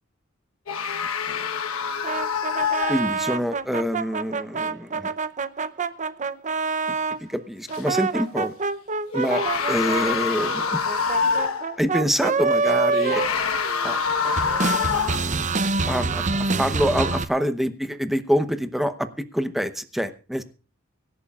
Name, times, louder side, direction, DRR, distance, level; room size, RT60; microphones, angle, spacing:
sound 1, 0.7-3.4 7.7-7.8 9.1-11.8 12.9-15.3, left 6 dB, 80° left, 1.2 m, -26 dB
sound 2, 2.0-7.2 7.7-14.0 14.2-17.3, right 4 dB, 35° right, 0.7 m, -26 dB
voice 1, 2.9-5.1 7.3-8.5 9.1-10.8 11.8-13.2 13.8-14.0 15.9-19.1 19.3-20.4, equal, ahead, 9 dB, 0.9 m, -26 dB
24.5 x 11.0 x 2.4 m, 0.36 s
head